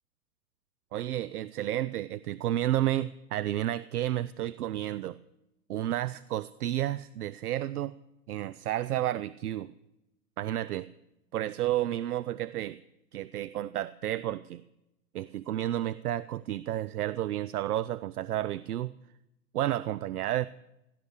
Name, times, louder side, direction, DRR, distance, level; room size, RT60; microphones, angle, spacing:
voice 1, 0.9-5.2 5.7-7.9 8.3-9.7 10.4-10.9 11.3-12.8 13.1-14.6 15.1-18.9 19.5-20.5, right 13 dB, 70° right, 16 dB, 0.7 m, -31 dB
17.0 x 12.0 x 6.6 m, 0.90 s
hypercardioid pair, 115°, 47 cm